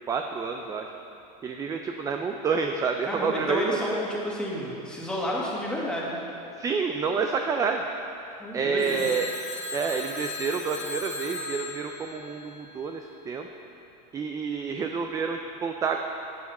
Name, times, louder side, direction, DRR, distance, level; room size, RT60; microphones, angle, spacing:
voice 1, 0.1-0.9 1.4-3.8 6.6-7.8 8.5-9.3 9.7-13.5 14.1-16.0, right 5 dB, 15° right, 4 dB, 0.4 m, -28 dB
voice 2, 3.0-6.2 8.4-9.1, left 1 dB, 5° left, -5 dB, 1.9 m, -30 dB
Telephone, 8.8-13.0, left 3 dB, 20° left, 2.1 m, -38 dB
12.0 x 8.6 x 4.2 m, 2.9 s
supercardioid pair, 140°, 20 cm